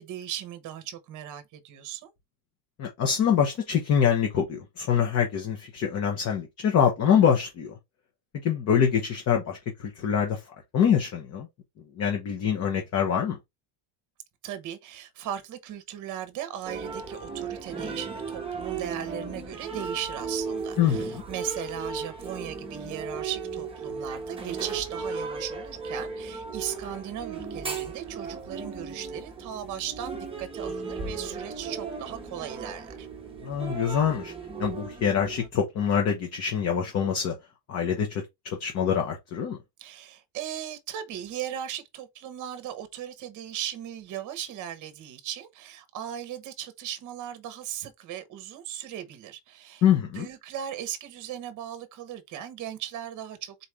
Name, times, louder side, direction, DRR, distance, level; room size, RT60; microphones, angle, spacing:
voice 1, 0.0-2.1 14.4-33.1 39.8-49.8 50.1-53.6, right 10 dB, 40° right, 0.9 m, -37 dB
voice 2, 2.8-7.8 8.4-10.4 10.7-11.5 12.0-13.4 20.8-21.2 33.4-34.3 34.6-37.4 37.7-39.6 49.8-50.3, left 8 dB, 35° left, 0.8 m, -25 dB
sound 1, 16.6-35.5, right 4 dB, 10° right, 0.9 m, -36 dB
4.1 x 3.1 x 3.4 m
cardioid pair, 165°, 48 cm